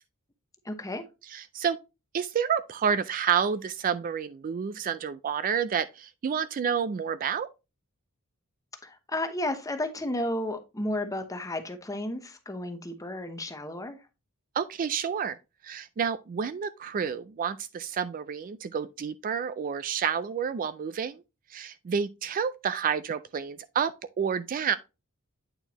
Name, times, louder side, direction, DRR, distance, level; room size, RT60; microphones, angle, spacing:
voice 1, 0.6-1.0 8.8-14.0, left 1 dB, 15° left, 0.9 m, -33 dB
voice 2, 1.3-1.8 2.1-7.5 14.5-15.4 15.6-21.2 21.5-24.8, right 7 dB, 40° right, 0.3 m, -29 dB
8.7 x 4.4 x 2.9 m
head